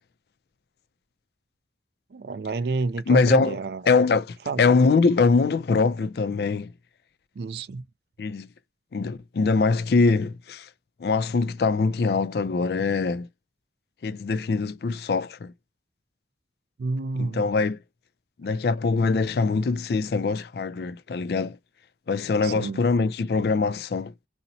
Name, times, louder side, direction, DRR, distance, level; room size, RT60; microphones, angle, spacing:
voice 1, 2.1-3.8 4.5-4.6 7.4-7.8 16.8-17.4 22.4-22.8, right 3 dB, 60° right, 0.4 m, -29 dB
voice 2, 3.1-3.6 3.9-6.7 8.2-8.5 8.9-10.7 11.0-13.3 14.0-15.5 17.2-17.8 18.4-21.6 22.1-24.1, left 4 dB, 60° left, 0.4 m, -23 dB
3.9 x 2.0 x 2.7 m
head